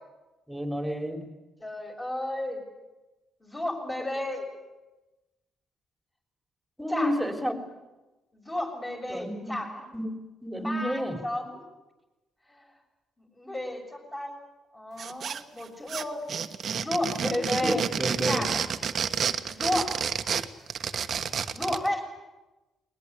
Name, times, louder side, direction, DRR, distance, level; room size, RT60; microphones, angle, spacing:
voice 1, 0.5-1.3 6.8-7.7 9.1-9.6 9.9-11.2 17.6-18.4, equal, 5° right, 5 dB, 3.8 m, -31 dB
voice 2, 1.6-2.6 3.4-4.5 6.9-7.3 8.3-9.8 10.6-11.6 12.5-12.6 13.3-14.4 14.7-16.2 16.7-17.9 18.2-18.6 19.5-19.9 21.5-22.1, left 1 dB, 15° left, 3 dB, 6.7 m, -32 dB
sound 1, 15.0-15.6 15.9-21.9, right 7 dB, 55° right, 1.3 m, -30 dB
21.0 x 20.5 x 9.7 m, 1.1 s
cardioid pair, 90°, 0 cm